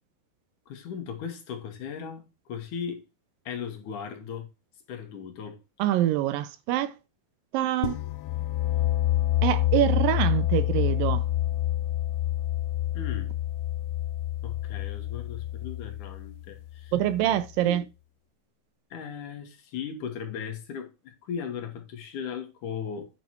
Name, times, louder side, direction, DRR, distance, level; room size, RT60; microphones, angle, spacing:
voice 1, 0.7-3.0 3.5-4.5 4.9-5.6 12.9-13.3 14.4-16.9 17.7-17.8 18.9-23.1, left 7 dB, 65° left, 2.6 m, -37 dB
voice 2, 5.8-7.0 7.5-8.0 9.4-11.2 16.9-17.8, right 13 dB, 80° right, 2.2 m, -25 dB
sound 1, 7.8-17.4, left 13 dB, 90° left, 2.5 m, -28 dB
9.0 x 5.8 x 4.5 m
omnidirectional pair, 4.2 m